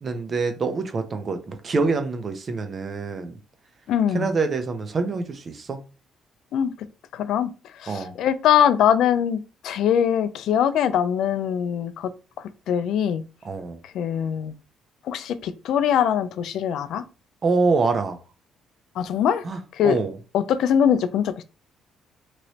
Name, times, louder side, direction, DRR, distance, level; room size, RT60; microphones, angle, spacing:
voice 1, 0.0-3.4 4.1-5.8 7.9-8.1 13.4-13.8 17.4-18.2 19.4-20.2, right 4 dB, 35° right, 0.6 m, -25 dB
voice 2, 3.9-4.3 6.5-6.7 7.1-7.5 7.8-12.1 12.7-13.2 13.9-14.5 15.1-17.0 19.0-19.4 19.7-20.0 20.3-21.3, left 9 dB, 75° left, 0.4 m, -22 dB
3.0 x 2.9 x 2.8 m
cardioid pair, 125°, 0 cm